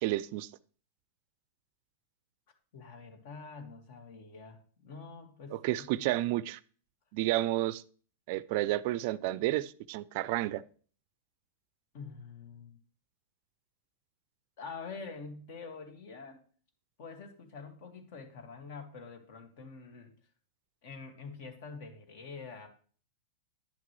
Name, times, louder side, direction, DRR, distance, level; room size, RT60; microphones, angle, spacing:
voice 1, 0.0-0.5 5.5-6.6 7.1-7.8 8.3-10.6, right 16 dB, 55° right, 0.3 m, -31 dB
voice 2, 2.7-5.6 5.9-6.0 11.9-12.8 14.6-16.4 17.0-20.1 20.8-22.7, left 4 dB, 60° left, 1.9 m, -46 dB
10.0 x 5.9 x 3.1 m
hypercardioid pair, 120°, 0 cm